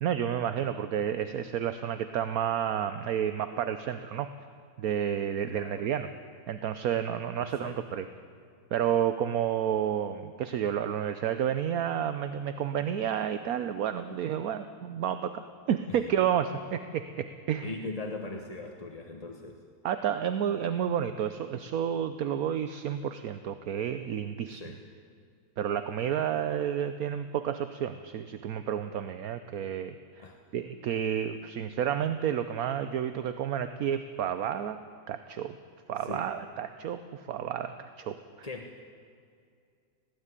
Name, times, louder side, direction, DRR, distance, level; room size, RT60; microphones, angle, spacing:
voice 1, 0.0-4.3 4.8-6.1 6.5-8.0 8.7-17.7 19.8-24.6 25.6-29.9 30.5-34.8 35.1-35.5 35.9-38.5, right 9 dB, 60° right, 11 dB, 1.0 m, -30 dB
voice 2, 5.5-5.9 7.4-8.0 15.9-16.0 17.6-19.6 24.5-24.8 30.2-30.4 36.0-36.3 38.4-38.9, left 3 dB, 25° left, 3 dB, 1.0 m, -40 dB
19.5 x 16.0 x 9.8 m, 2.3 s
omnidirectional pair, 2.0 m